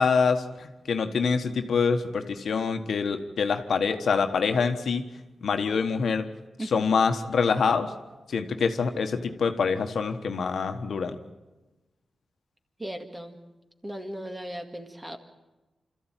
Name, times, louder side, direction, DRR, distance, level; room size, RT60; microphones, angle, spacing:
voice 1, 0.0-5.0 5.4-6.3 6.6-7.9 8.3-11.2, left 5 dB, 75° left, 7 dB, 1.3 m, -25 dB
voice 2, 12.8-13.4 13.8-15.2, right 1 dB, 15° right, 5 dB, 2.0 m, -36 dB
26.0 x 14.0 x 9.1 m, 1.1 s
wide cardioid pair, 100°, 0 cm